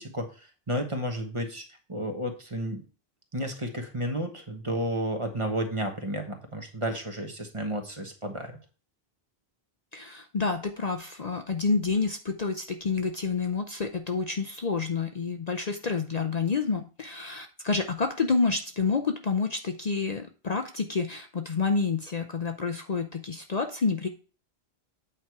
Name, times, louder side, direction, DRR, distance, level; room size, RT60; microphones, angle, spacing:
voice 1, 0.0-2.8 3.3-8.6, right 1 dB, 30° right, 4 dB, 1.3 m, -32 dB
voice 2, 9.9-24.1, left 4 dB, 45° left, 5 dB, 0.7 m, -28 dB
8.8 x 4.5 x 4.7 m, 0.36 s
omnidirectional pair, 1.1 m